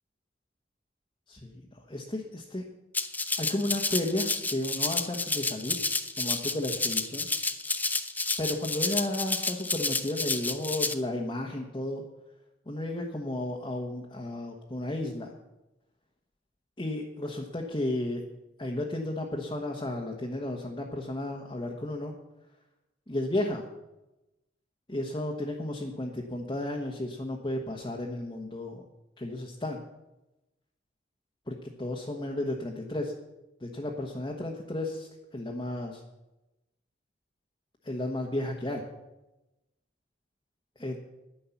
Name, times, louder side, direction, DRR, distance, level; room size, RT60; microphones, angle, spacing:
voice 1, 1.3-1.6 1.9-2.6 3.4-5.8 6.2-7.3 8.4-12.0 12.7-15.3 16.8-18.2 18.6-22.1 23.1-23.6 24.9-28.8 29.2-29.8 31.5-33.1 33.6-36.0 37.8-38.8 40.8-41.1, left 1 dB, 25° left, -1 dB, 1.2 m, -33 dB
Rattle (instrument), 2.9-10.9, left 3 dB, 10° left, 0.6 m, -30 dB
10.5 x 10.0 x 7.1 m, 0.98 s
head